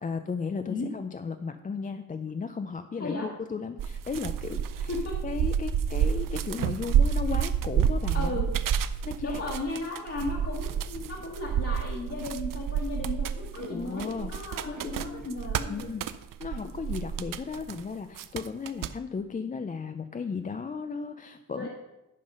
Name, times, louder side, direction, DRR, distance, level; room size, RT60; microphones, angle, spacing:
voice 1, 0.0-4.9 5.2-8.4 9.0-9.4 13.7-15.3 15.7-16.1 16.4-21.7, left 5 dB, 25° left, 8 dB, 0.3 m, -35 dB
sound 1, 3.8-17.8 18.2-18.9, right 8 dB, 80° right, 0.5 m, -29 dB
voice 2, 8.1-8.5 9.2-15.9 21.6-21.7, left 2 dB, 45° left, -3 dB, 1.4 m, -35 dB
Animal, 10.2-10.3 11.0-11.6 12.4-14.1 14.7-16.0, right 8 dB, 60° right, 1.0 m, -49 dB
11.0 x 5.6 x 5.4 m, 0.95 s
wide cardioid pair, 160°, 32 cm